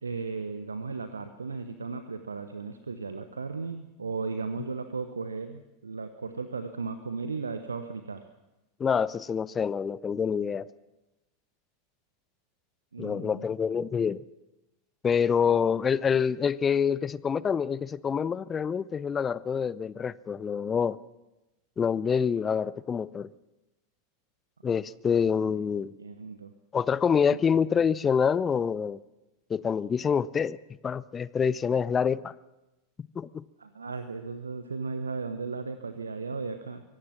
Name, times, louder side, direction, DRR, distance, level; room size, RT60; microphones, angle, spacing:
voice 1, 0.0-8.3 12.9-13.5 15.5-15.7 26.0-26.5 27.3-27.4 33.6-36.8, right 4 dB, 75° right, 10 dB, 1.0 m, -36 dB
voice 2, 8.8-10.7 13.0-14.2 15.0-21.0 21.8-23.3 24.6-25.9 26.7-29.0 29.5-30.6 30.8-32.3 33.2-33.4, left 6 dB, 20° left, 20 dB, 0.6 m, -26 dB
24.5 x 17.5 x 6.1 m, 1.0 s
figure-of-eight pair, 85°, 0 cm